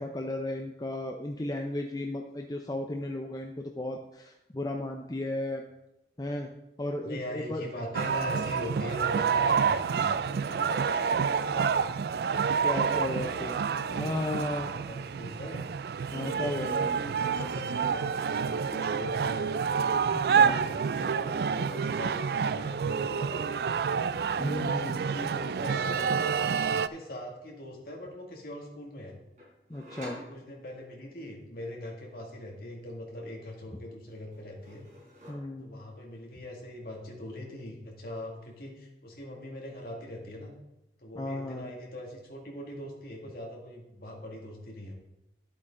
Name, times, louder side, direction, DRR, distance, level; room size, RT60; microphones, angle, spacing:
voice 1, 0.0-5.6 6.2-6.5 6.8-7.6 12.6-13.5 13.9-14.7 16.1-16.9 20.1-20.6 24.4-25.0 29.7-30.2 35.3-35.8 41.2-41.7, left 1 dB, 20° left, 2 dB, 0.6 m, -34 dB
voice 2, 7.0-11.9 12.5-14.2 14.6-15.7 16.2-19.6 20.4-23.8 24.2-26.3 26.7-29.2 30.0-34.8 35.6-40.5 41.0-44.9, left 1 dB, 55° left, -1 dB, 2.1 m, -42 dB
sound 1, 7.9-26.9, right 6 dB, 60° right, 0.3 m, -28 dB
sound 2, 29.4-31.0 33.2-33.8 34.1-35.8, equal, 45° right, 3.8 m, -50 dB
11.0 x 8.0 x 3.8 m, 0.91 s
head